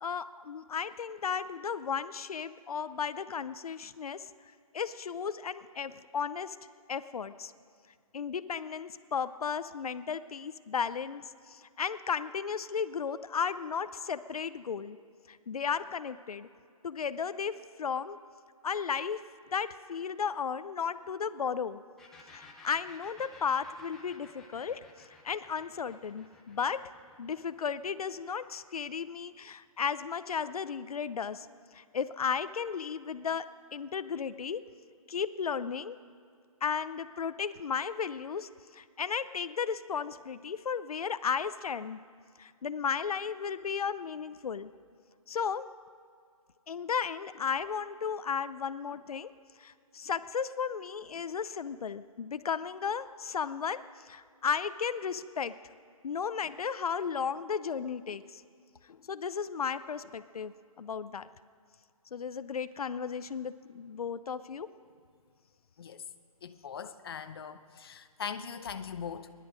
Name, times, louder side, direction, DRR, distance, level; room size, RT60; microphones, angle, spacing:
voice 1, 0.0-4.3 4.7-6.6 6.9-7.5 8.1-15.0 15.3-16.5 16.8-18.2 18.6-19.2 19.5-21.8 22.3-26.8 27.2-31.5 31.7-33.5 33.7-34.6 35.1-36.0 36.6-42.0 42.4-44.7 45.3-45.7 46.7-49.3 49.6-55.5 56.0-58.4 58.9-60.5 60.8-61.3 62.1-64.7, left 6 dB, 80° left, 0.6 m, -34 dB
sound 1, 22.0-29.5, left 3 dB, ahead, 0.6 m, -56 dB
voice 2, 66.4-69.3, left 7 dB, 40° left, 0.7 m, -40 dB
23.0 x 11.0 x 5.1 m
hypercardioid pair, 170°, 19 cm